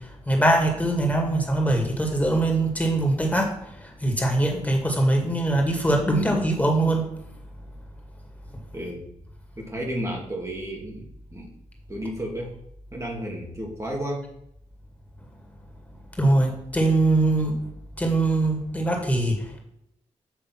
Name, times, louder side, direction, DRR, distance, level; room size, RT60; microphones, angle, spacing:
voice 1, 0.3-3.5 3.8-7.0 16.2-17.6 18.0-19.3, right 2 dB, 10° left, 1 dB, 2.1 m, -22 dB
voice 2, 8.7-9.1 9.6-11.5 11.9-12.5 12.9-14.3, equal, 25° right, -1 dB, 1.8 m, -32 dB
7.7 x 3.3 x 5.9 m, 0.76 s
cardioid pair, 60°, 13 cm